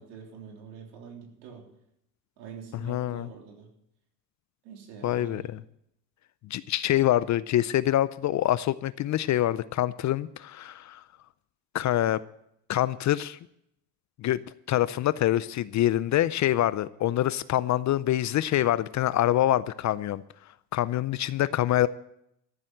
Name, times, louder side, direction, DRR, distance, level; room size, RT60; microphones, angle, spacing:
voice 1, 0.0-1.7 2.4-3.7 4.6-5.5, right 6 dB, 75° right, 2 dB, 3.5 m, -45 dB
voice 2, 2.9-3.3 5.0-5.4 6.5-11.0 11.7-12.2 12.7-13.4 14.2-14.4 14.7-20.2 20.7-21.9, left 13 dB, 35° left, 17 dB, 0.5 m, -25 dB
14.0 x 7.4 x 7.9 m, 0.76 s
hypercardioid pair, 85°, 49 cm